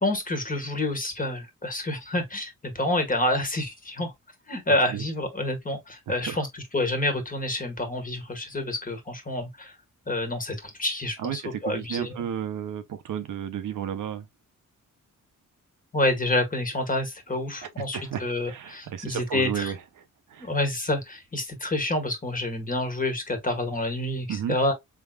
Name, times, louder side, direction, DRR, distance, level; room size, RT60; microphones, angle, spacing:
voice 1, 0.0-4.1 4.5-9.7 10.1-12.1 15.9-19.7 20.4-24.7, left 1 dB, 25° left, 1.5 m, -28 dB
voice 2, 4.7-5.0 6.1-6.5 11.2-14.3 17.6-20.5 24.3-24.6, right 9 dB, 75° right, 0.9 m, -33 dB
4.6 x 3.5 x 2.3 m
wide cardioid pair, 115°, 32 cm